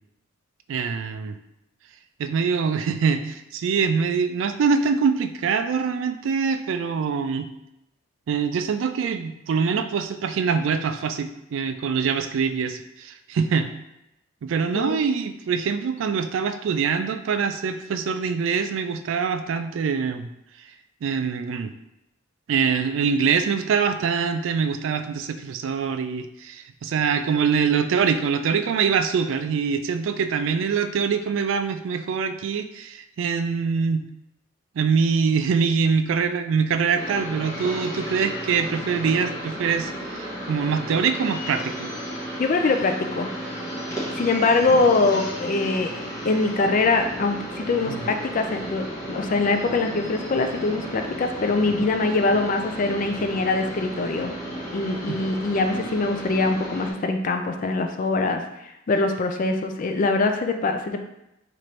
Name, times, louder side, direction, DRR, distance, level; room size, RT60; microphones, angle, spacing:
voice 1, 0.7-1.4 2.2-7.5 8.3-13.7 14.4-20.3 21.0-21.7 22.5-34.0 34.8-41.9 47.9-48.0 55.1-55.2, right 6 dB, 70° right, 9 dB, 0.3 m, -24 dB
sound 1, 36.9-56.9, equal, 15° left, 0.9 m, -33 dB
voice 2, 42.4-43.3 44.1-54.3 54.7-61.0, left 3 dB, 40° left, 5 dB, 0.3 m, -23 dB
4.3 x 2.6 x 3.1 m, 0.87 s
head